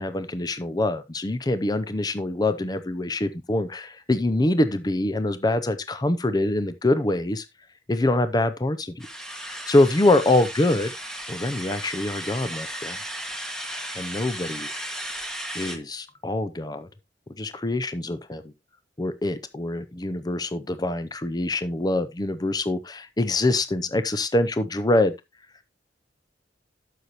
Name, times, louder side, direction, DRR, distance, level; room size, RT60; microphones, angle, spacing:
voice 1, 0.0-7.5 7.9-9.1 9.7-10.9 11.3-13.0 14.0-14.7 15.5-16.9 17.4-18.5 19.0-25.1, left 2 dB, 25° left, 0.6 m, -24 dB
sound 1, 9.0-15.8, equal, 5° left, 1.5 m, -35 dB
12.0 x 6.7 x 2.9 m
head